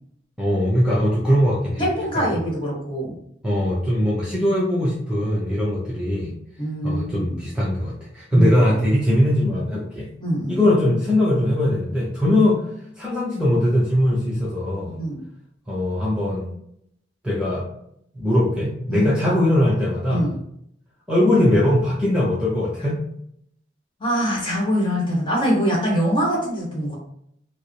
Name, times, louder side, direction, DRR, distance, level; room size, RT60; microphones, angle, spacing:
voice 1, 0.4-1.9 2.1-2.2 3.4-6.3 6.8-10.1 10.5-12.6 13.0-15.0 15.7-16.5 17.2-17.6 18.1-20.3 21.1-23.0, left 1 dB, 5° right, -6 dB, 0.6 m, -20 dB
voice 2, 1.8-3.1 6.6-7.3 8.3-8.7 10.2-10.6 15.0-15.2 18.9-19.4 20.1-20.3 24.0-27.0, equal, 25° left, -3 dB, 1.3 m, -23 dB
4.7 x 2.0 x 3.1 m, 0.72 s
head